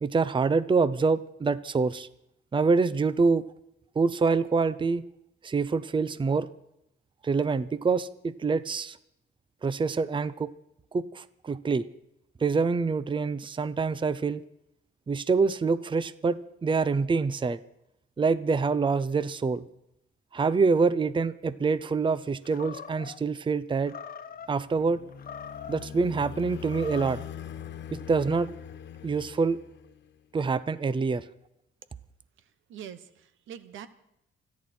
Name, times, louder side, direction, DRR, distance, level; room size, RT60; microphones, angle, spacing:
voice 1, 0.0-2.1 2.5-3.4 4.0-5.0 5.4-6.5 7.2-9.0 9.6-10.5 10.9-11.9 12.4-14.4 15.1-17.6 18.2-19.6 20.3-23.9 24.5-25.0 25.7-27.2 27.9-28.5 29.0-29.6 30.3-31.2, right 4 dB, 25° right, 16 dB, 0.7 m, -26 dB
Animal, 22.4-23.2 23.8-24.5 25.1-25.9 26.6-27.2, left 7 dB, 45° left, 1.1 m, -42 dB
sound 1, 24.4-30.2, left 9 dB, 65° left, 1.4 m, -42 dB
voice 2, 32.7-33.9, right 9 dB, 80° right, 13 dB, 1.2 m, -43 dB
29.0 x 10.5 x 4.4 m, 0.79 s
cardioid pair, 90°, 20 cm